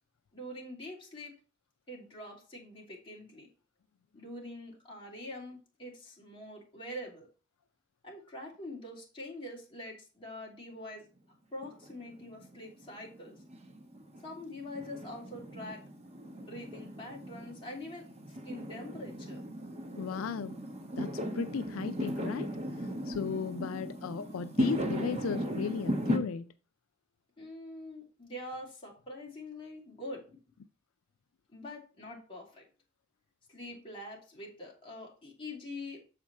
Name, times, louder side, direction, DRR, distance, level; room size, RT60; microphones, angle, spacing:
voice 1, 0.3-1.3 1.9-3.5 4.1-7.3 8.0-11.0 11.5-13.4 14.2-15.8 16.4-18.1 18.4-19.4 27.4-30.2 31.5-32.7 33.5-36.0, left 1 dB, 25° left, 2.8 m, -44 dB
Fireworks, 11.6-26.2, equal, 30° right, 1.1 m, -37 dB
voice 2, 20.0-20.6 21.0-22.6 23.1-26.5, left 6 dB, 80° left, 0.4 m, -35 dB
7.2 x 5.0 x 4.1 m
head